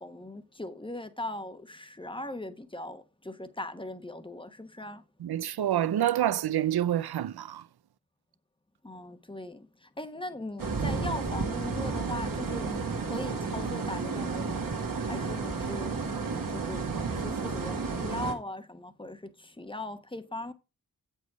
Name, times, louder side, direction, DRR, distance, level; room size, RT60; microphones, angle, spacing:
voice 1, 0.0-5.0 8.8-14.6 15.0-16.0 16.5-20.5, left 1 dB, 15° left, 1.1 m, -39 dB
voice 2, 5.2-7.7, right 11 dB, 80° right, 0.6 m, -27 dB
sound 1, 10.6-18.3, right 4 dB, 60° right, 1.8 m, -32 dB
8.3 x 7.4 x 4.7 m
wide cardioid pair, 90°, 37 cm